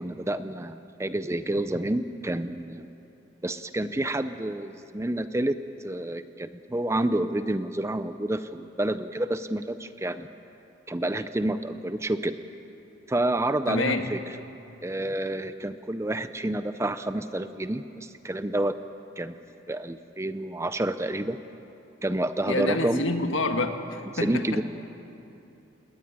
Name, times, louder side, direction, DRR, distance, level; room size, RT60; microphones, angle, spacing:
voice 1, 0.0-2.9 3.4-10.3 10.9-12.4 13.1-14.2 14.8-18.7 19.2-19.4 19.7-21.4 22.0-23.0 24.2-24.6, right 1 dB, 15° right, 11 dB, 0.6 m, -29 dB
voice 2, 13.7-14.0 22.5-24.4, left 2 dB, 75° left, 6 dB, 1.6 m, -27 dB
20.0 x 19.5 x 9.5 m, 2.8 s
head